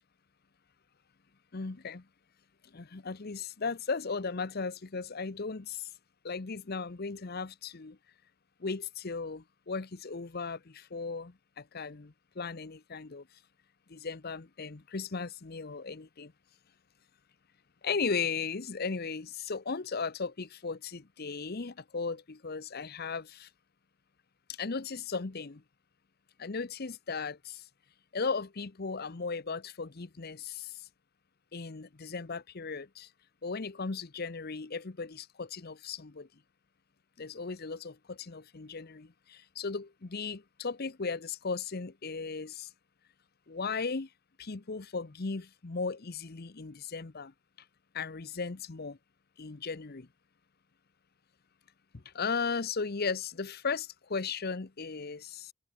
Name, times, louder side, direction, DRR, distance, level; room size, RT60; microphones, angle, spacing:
voice 1, 1.5-2.1 2.7-5.9 6.2-8.0 8.6-13.3 13.9-16.3 17.8-23.5 24.5-25.6 26.4-27.7 28.1-30.9 31.5-33.1 33.4-36.3 37.2-42.7 43.5-44.1 44.4-47.3 47.9-49.0 49.4-50.1 51.9-55.5, left 4 dB, 50° left, 0.8 m, -36 dB
head